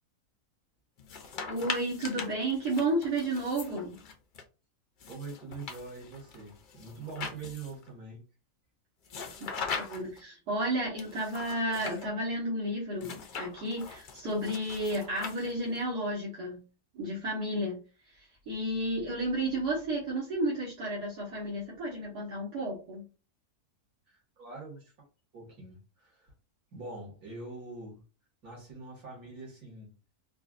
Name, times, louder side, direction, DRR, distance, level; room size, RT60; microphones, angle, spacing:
sound 1, 1.0-4.4 5.0-7.9 9.1-10.2 11.0-12.1 13.0-15.8, left 5 dB, 70° left, 0.4 m, -41 dB
voice 1, 1.5-4.0 9.1-9.5 9.9-16.6 16.9-17.8 18.1-23.0, right 1 dB, 90° right, 1.9 m, -32 dB
voice 2, 5.1-8.2 24.1-25.1 25.3-26.3 26.7-28.0 28.4-30.0, right 3 dB, 70° right, 2.3 m, -44 dB
4.5 x 2.5 x 2.4 m
omnidirectional pair, 1.6 m